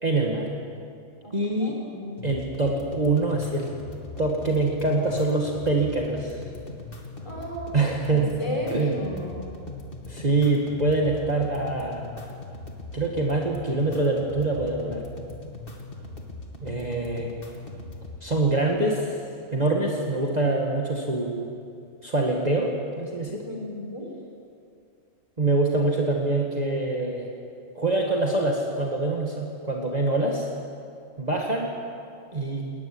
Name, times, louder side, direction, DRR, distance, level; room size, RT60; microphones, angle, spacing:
voice 1, 0.0-0.5 1.3-1.8 2.2-3.7 4.2-6.4 7.7-8.4 8.7-9.0 10.1-12.0 12.9-15.0 16.6-17.3 18.2-19.2 19.5-21.5 22.0-23.4 25.4-27.3 27.8-30.5 31.2-31.7 32.3-32.7, right 2 dB, 30° right, -1 dB, 2.2 m, -25 dB
voice 2, 1.2-2.1 7.2-9.5 23.4-24.1, equal, 20° left, -1 dB, 5.4 m, -34 dB
sound 1, 2.2-18.2, left 2 dB, 40° left, 2.7 m, -40 dB
20.5 x 19.5 x 9.8 m, 2.4 s
omnidirectional pair, 1.4 m